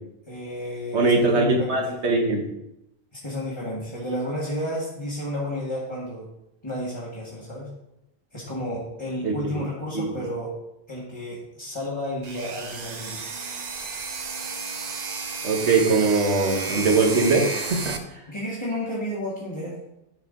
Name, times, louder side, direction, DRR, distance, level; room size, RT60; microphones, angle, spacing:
voice 1, 0.3-1.8 3.1-6.3 6.6-7.7 8.3-10.5 10.9-13.3 18.3-19.8, equal, 25° left, -7 dB, 2.0 m, -32 dB
voice 2, 0.9-2.5 9.2-9.7 9.9-10.1 15.4-18.0, right 3 dB, 80° right, 1 dB, 1.7 m, -21 dB
sound 1, 12.2-18.0, right 4 dB, 45° right, 0.8 m, -32 dB
11.5 x 4.9 x 3.8 m, 0.84 s
omnidirectional pair, 1.1 m